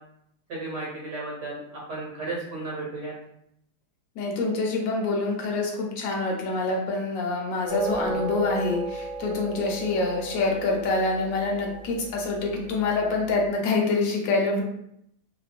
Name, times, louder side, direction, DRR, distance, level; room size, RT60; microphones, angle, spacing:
voice 1, 0.5-3.1 8.0-8.3, right 2 dB, 85° right, -5 dB, 1.4 m, -34 dB
voice 2, 4.2-14.6, left 3 dB, 65° left, 0 dB, 0.9 m, -26 dB
sound 1, 7.7-13.2, right 2 dB, 55° right, 1.3 m, -35 dB
3.0 x 2.0 x 2.4 m, 0.74 s
omnidirectional pair, 1.8 m